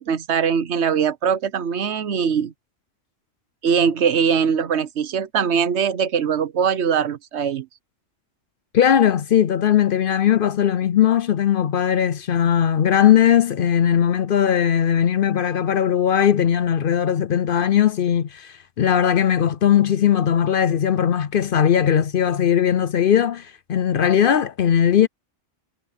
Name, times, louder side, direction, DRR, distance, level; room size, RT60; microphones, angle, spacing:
voice 1, 0.0-2.5 3.6-7.7, right 7 dB, 75° right, 1.2 m, -21 dB
voice 2, 8.7-25.1, left 9 dB, 55° left, 0.7 m, -19 dB
omnidirectional pair, 1.2 m